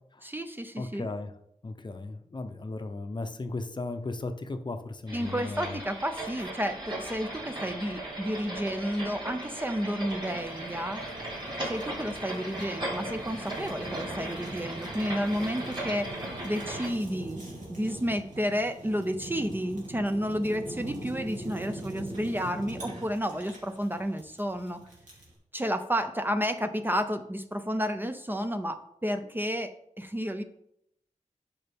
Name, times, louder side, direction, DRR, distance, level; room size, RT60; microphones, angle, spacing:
voice 1, 0.2-1.1 5.1-11.0 11.7-16.1 16.4-17.4 17.7-24.8 25.5-30.4, equal, 15° right, 8 dB, 0.5 m, -31 dB
voice 2, 0.8-1.3 1.6-5.8, left 2 dB, 35° left, 8 dB, 0.7 m, -36 dB
sound 1, 5.1-16.9, right 1 dB, 40° right, 3.6 m, -37 dB
Fire, 10.2-25.4, right 1 dB, 75° right, 3.0 m, -43 dB
11.0 x 5.7 x 3.5 m, 0.76 s
wide cardioid pair, 115°, 13 cm